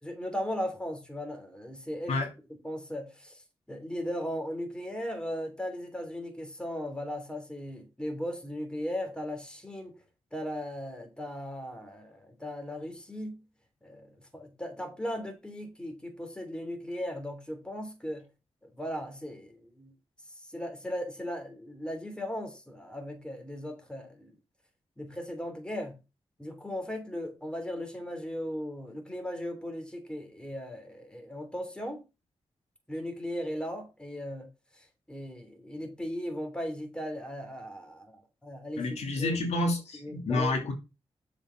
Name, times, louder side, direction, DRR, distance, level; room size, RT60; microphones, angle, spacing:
voice 1, 0.0-2.1 2.6-3.4 3.7-9.9 10.3-13.4 13.8-18.3 18.6-19.9 20.4-24.3 25.0-26.0 26.4-32.0 32.9-34.5 34.8-39.3 40.0-40.5, equal, 10° left, 3.1 m, -37 dB
voice 2, 38.8-40.7, left 2 dB, 80° left, 2.7 m, -29 dB
7.1 x 5.2 x 5.8 m
cardioid pair, 65°, 11 cm